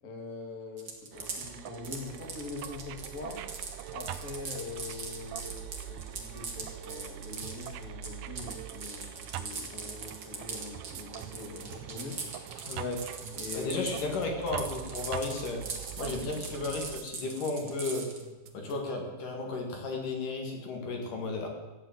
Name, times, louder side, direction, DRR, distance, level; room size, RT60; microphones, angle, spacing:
voice 1, 0.0-3.4 3.9-12.2 12.5-12.8 13.3-13.9 16.0-16.2, left 3 dB, 30° left, 1 dB, 1.4 m, -43 dB
sound 1, 0.8-14.2 14.4-18.2, right 4 dB, 45° right, 1.3 m, -41 dB
sound 2, 1.1-17.0, right 11 dB, 90° right, 2.1 m, -43 dB
sound 3, 10.9-18.8, right 9 dB, 65° right, 2.8 m, -48 dB
voice 2, 12.6-13.0 13.5-18.1 18.5-21.5, left 3 dB, 55° left, 2 dB, 3.1 m, -34 dB
14.0 x 8.8 x 9.0 m, 1.2 s
omnidirectional pair, 5.1 m